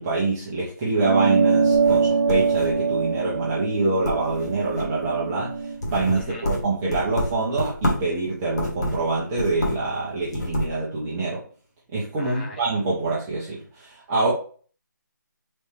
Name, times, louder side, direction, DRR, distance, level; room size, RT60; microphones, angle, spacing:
voice 1, 0.0-11.4 11.9-14.3, right 3 dB, 10° right, -7 dB, 0.3 m, -25 dB
sound 1, 1.0-5.8, right 5 dB, 65° right, 0.8 m, -23 dB
sound 2, 1.6-3.1 3.5-3.8 4.0-5.1 5.5-8.1 8.5-9.9 10.2-10.8, left 1 dB, 55° left, 1.3 m, -29 dB
voice 2, 6.1-6.5 12.2-12.7, left 2 dB, 30° left, -2 dB, 1.2 m, -40 dB
3.2 x 3.2 x 3.2 m, 0.43 s
figure-of-eight pair, 160°, 11 cm